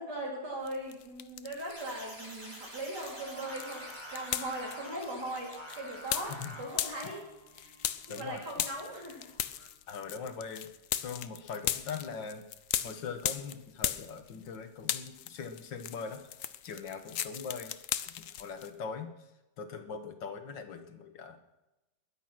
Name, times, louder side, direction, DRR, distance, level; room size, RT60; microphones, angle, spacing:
voice 1, 0.0-7.3 7.5-7.7 8.1-9.3, right 1 dB, 65° right, -1 dB, 4.7 m, -39 dB
sound 1, 0.7-1.8 2.2-14.6 14.8-18.7, left 10 dB, 60° left, 0.9 m, -37 dB
sound 2, 1.7-7.1, equal, 25° right, 5.7 m, -49 dB
Singing, 3.0-9.7, equal, 15° left, 1.5 m, -50 dB
voice 2, 8.1-8.4 9.9-10.7 11.0-12.4 12.8-16.2 16.6-17.7 18.2-19.1 19.6-21.4, left 5 dB, 90° left, 7 dB, 2.0 m, -41 dB
21.5 x 9.3 x 6.0 m, 0.98 s
omnidirectional pair, 1.9 m